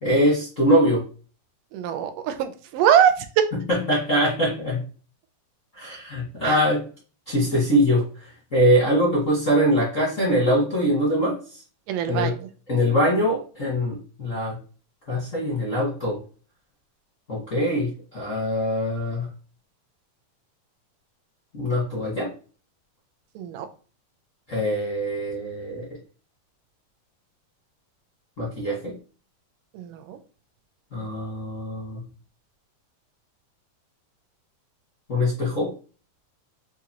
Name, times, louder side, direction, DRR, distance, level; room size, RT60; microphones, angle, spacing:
voice 1, 0.0-1.0 3.7-4.8 5.7-6.8 7.3-8.0 8.5-11.4 12.1-12.3 12.7-14.5 15.1-16.2 17.3-19.2 21.5-22.3 24.5-25.9 28.4-28.9 30.9-32.0 35.1-35.7, equal, 55° left, -7 dB, 0.8 m, -23 dB
voice 2, 1.7-3.5 6.4-6.6 11.9-12.3 23.4-23.7 29.7-30.2, right 9 dB, 90° right, 7 dB, 2.2 m, -22 dB
5.9 x 2.5 x 2.8 m, 0.37 s
omnidirectional pair, 3.7 m